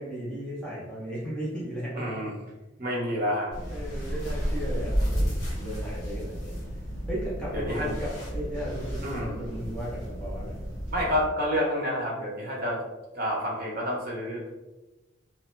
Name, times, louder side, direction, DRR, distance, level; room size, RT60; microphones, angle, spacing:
voice 1, 0.0-2.1 3.6-6.6 7.1-10.6, equal, 5° left, -9 dB, 0.8 m, -35 dB
voice 2, 2.0-2.3 2.8-3.5 4.0-4.2 7.5-7.9 9.0-9.4 10.9-12.8 13.1-14.5, equal, 45° right, -3 dB, 0.8 m, -29 dB
sound 1, 3.5-11.3, equal, 50° left, 1.4 m, -32 dB
2.9 x 2.1 x 3.2 m, 1.1 s
head